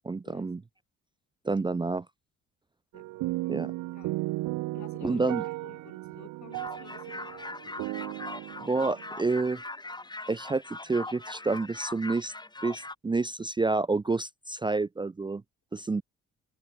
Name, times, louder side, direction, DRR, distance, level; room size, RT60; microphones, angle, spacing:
voice 1, 0.0-0.6 1.4-2.0 3.5-3.7 5.0-5.4 8.6-9.6 10.3-12.3 12.6-15.4 15.7-16.0, right 3 dB, 15° right, 0.5 m, -29 dB
voice 2, 2.9-3.4 3.9-4.2 4.7-5.3 5.6-7.8, left 10 dB, 65° left, 7.2 m, -52 dB
sound 1, 2.9-9.3, right 19 dB, 80° right, 0.5 m, -35 dB
sound 2, 6.5-12.9, left 2 dB, 15° left, 2.5 m, -41 dB
open air
cardioid pair, 90°, 30 cm